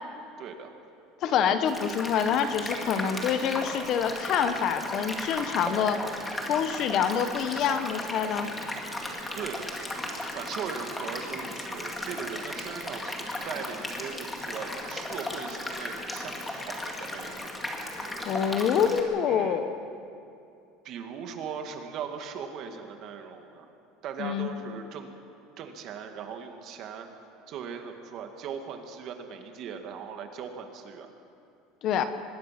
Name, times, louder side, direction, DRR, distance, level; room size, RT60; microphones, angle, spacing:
voice 1, 0.4-0.7 9.4-9.7 10.3-17.5 19.3-19.6 20.8-23.7 24.0-25.1 25.6-27.1 27.5-31.1, right 7 dB, 40° right, 5 dB, 2.0 m, -39 dB
voice 2, 1.2-6.0 6.5-8.5 18.2-19.8 24.2-24.5 31.8-32.0, left 8 dB, 40° left, 10 dB, 1.0 m, -26 dB
sound 1, 1.7-19.0, left 1 dB, 10° left, 2.2 m, -36 dB
24.0 x 21.0 x 5.9 m, 2.5 s
cardioid pair, 165°, 0 cm